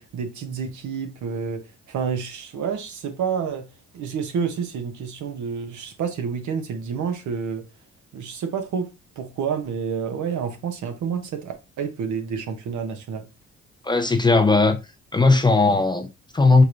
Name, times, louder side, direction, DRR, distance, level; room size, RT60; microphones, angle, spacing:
voice 1, 0.0-1.6 1.9-3.7 3.9-7.6 8.1-8.9 9.2-13.3, right 6 dB, 70° right, 1.0 m, -29 dB
voice 2, 13.8-14.8 15.1-16.6, left 3 dB, 15° left, 0.5 m, -17 dB
5.0 x 3.1 x 2.5 m
cardioid pair, 90°, 30 cm